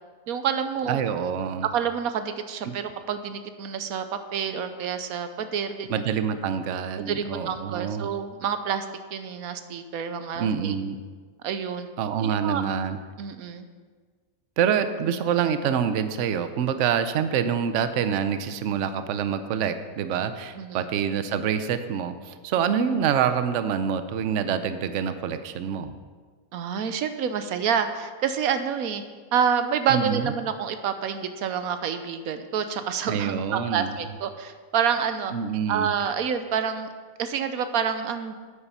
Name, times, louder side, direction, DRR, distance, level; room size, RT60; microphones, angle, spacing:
voice 1, 0.3-1.0 1.7-4.0 4.3-6.0 7.0-8.8 9.1-10.7 11.4-11.9 12.2-12.6 13.2-13.7 20.6-20.8 26.5-29.0 29.3-35.3 35.7-36.9 37.2-38.3, right 7 dB, 90° right, 9 dB, 1.2 m, -28 dB
voice 2, 0.9-1.7 2.6-2.7 5.9-8.1 10.4-11.0 12.0-13.0 14.6-26.0 29.9-30.3 33.1-33.9 35.3-35.9, right 8 dB, 65° right, 10 dB, 0.9 m, -26 dB
9.5 x 8.6 x 5.6 m, 1.5 s
omnidirectional pair, 1.5 m